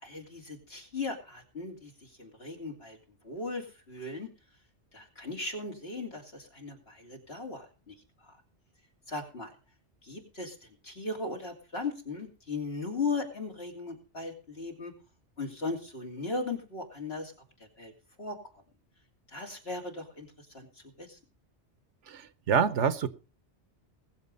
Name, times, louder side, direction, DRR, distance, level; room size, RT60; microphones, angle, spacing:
voice 1, 0.0-3.0 3.2-4.3 4.9-7.9 8.2-8.4 9.1-9.5 10.0-14.9 15.4-17.3 17.8-17.9 18.2-18.4 19.3-20.7 21.0-21.2, left 3 dB, 60° left, 2 dB, 3.1 m, -37 dB
voice 2, 22.1-23.1, right 7 dB, 85° right, 15 dB, 1.2 m, -27 dB
20.5 x 7.4 x 5.3 m, 0.35 s
omnidirectional pair, 1.2 m